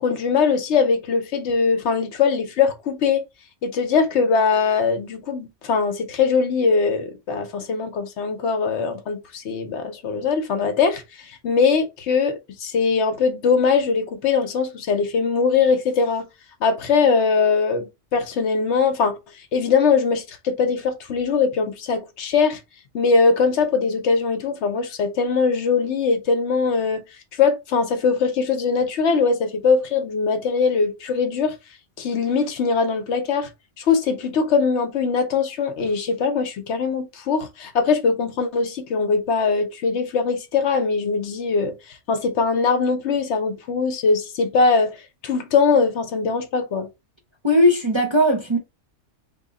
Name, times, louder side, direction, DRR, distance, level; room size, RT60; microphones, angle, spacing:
voice 1, 0.0-3.2 3.6-16.3 16.6-19.2 19.5-22.6 22.9-27.0 27.3-31.6 32.0-33.5 33.8-46.9, left 5 dB, 65° left, 0.9 m, -21 dB
voice 2, 47.4-48.6, left 1 dB, 30° right, 0.6 m, -18 dB
2.9 x 2.3 x 3.9 m
omnidirectional pair, 1.3 m